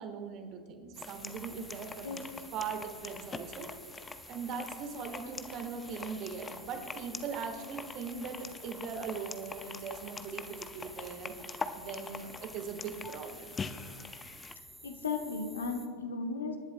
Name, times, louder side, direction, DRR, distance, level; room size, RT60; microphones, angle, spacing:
voice 1, 0.0-3.7 4.3-11.3 11.7-13.6, right 6 dB, 35° right, 6 dB, 1.5 m, -40 dB
sound 1, 0.9-15.9, right 1 dB, 5° right, 1.4 m, -52 dB
sound 2, 1.0-14.6, left 5 dB, 15° left, 0.5 m, -44 dB
voice 2, 14.8-16.6, left 4 dB, 70° left, 4 dB, 1.2 m, -35 dB
27.0 x 11.0 x 2.2 m, 2.1 s
figure-of-eight pair, 90°, 0 cm